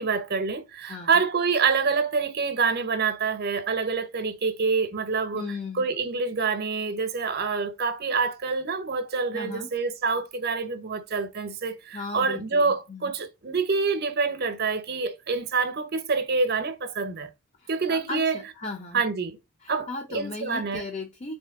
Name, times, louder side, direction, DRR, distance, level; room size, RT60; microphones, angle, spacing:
voice 1, 0.0-5.5 5.7-17.3 17.7-18.4 18.9-19.4 19.7-20.8, right 4 dB, 50° right, 0.7 m, -26 dB
voice 2, 0.8-1.2 5.3-5.8 9.3-9.7 11.9-13.1 17.6-19.0 19.6-21.4, left 3 dB, 35° left, 0.5 m, -36 dB
4.2 x 2.7 x 3.4 m
head